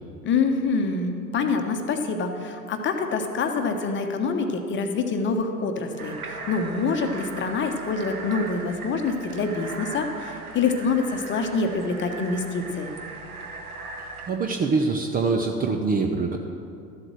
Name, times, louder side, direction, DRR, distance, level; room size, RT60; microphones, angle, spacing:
voice 1, 0.2-12.9, left 4 dB, 25° left, 5 dB, 1.1 m, -26 dB
sound 1, 6.0-14.3, right 4 dB, 75° right, 1.3 m, -38 dB
voice 2, 14.3-16.4, right 4 dB, 20° right, 4 dB, 0.6 m, -24 dB
13.0 x 7.8 x 6.2 m, 2.5 s
figure-of-eight pair, 80°, 45 cm